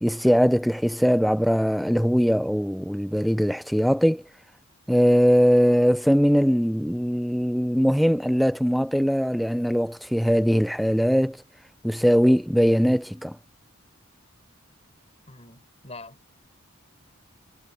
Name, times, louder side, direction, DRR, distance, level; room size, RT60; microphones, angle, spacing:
voice 1, 0.0-4.2 4.9-11.4 11.8-13.4, equal, ahead, 0.4 m, -21 dB
voice 2, 15.3-16.4, left 2 dB, 30° left, 6.4 m, -44 dB
head